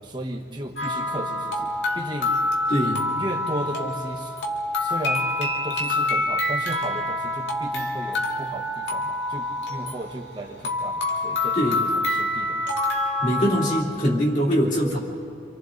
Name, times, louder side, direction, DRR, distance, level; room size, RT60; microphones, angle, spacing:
voice 1, 0.0-2.4 3.1-4.3 4.8-12.6, right 1 dB, 25° right, 0 dB, 1.3 m, -34 dB
sound 1, 0.8-13.8, left 2 dB, 75° left, 2.2 m, -27 dB
voice 2, 2.7-3.1 11.5-11.8 13.2-15.0, equal, 45° left, -3 dB, 3.1 m, -22 dB
28.0 x 26.5 x 4.0 m, 2.4 s
head